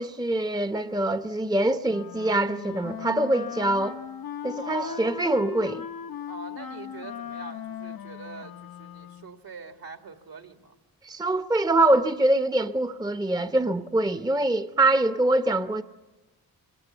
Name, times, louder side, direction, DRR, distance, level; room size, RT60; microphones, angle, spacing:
voice 1, 0.0-4.0 4.4-5.8 11.0-15.8, right 2 dB, 10° right, 0.8 m, -24 dB
Wind instrument woodwind instrument, 1.9-9.4, left 8 dB, 65° left, 0.8 m, -38 dB
voice 2, 4.5-5.0 6.3-10.8, right 4 dB, 65° right, 2.3 m, -43 dB
27.0 x 23.5 x 8.2 m
cardioid pair, 55°, 38 cm